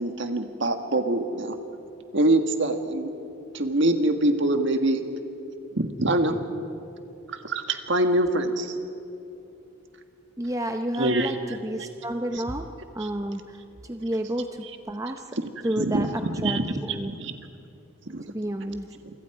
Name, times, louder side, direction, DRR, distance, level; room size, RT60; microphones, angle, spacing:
voice 1, 0.0-1.6 2.1-3.1 3.5-5.0 5.7-6.4 7.3-8.8 10.9-11.6 12.3-12.4 13.0-13.1 14.6-14.7 15.3-17.4 18.1-18.2, right 1 dB, 55° right, 6 dB, 1.6 m, -25 dB
voice 2, 10.4-11.3 11.6-12.6 12.9-13.6 13.9-15.2 15.6-16.1 16.4-17.1 18.3-18.9, right 1 dB, 15° right, 5 dB, 0.6 m, -30 dB
28.0 x 25.0 x 4.9 m, 2.7 s
head